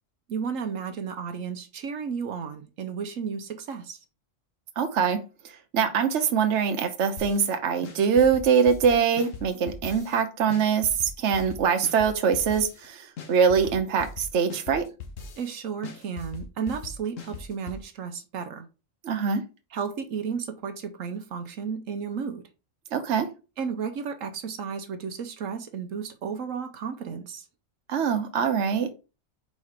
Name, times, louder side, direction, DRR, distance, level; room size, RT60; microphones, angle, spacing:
voice 1, 0.3-4.0 15.4-18.7 19.7-22.5 23.6-27.4, right 6 dB, 80° right, 1.1 m, -33 dB
voice 2, 4.8-5.2 5.7-14.8 19.0-19.4 22.9-23.3 27.9-29.0, right 6 dB, 65° right, 1.1 m, -23 dB
sound 1, 7.2-7.5 7.8-10.2 10.5-12.9 13.2-15.5 15.8-17.8, left 4 dB, 75° left, 1.4 m, -40 dB
4.8 x 4.2 x 5.0 m
omnidirectional pair, 1.4 m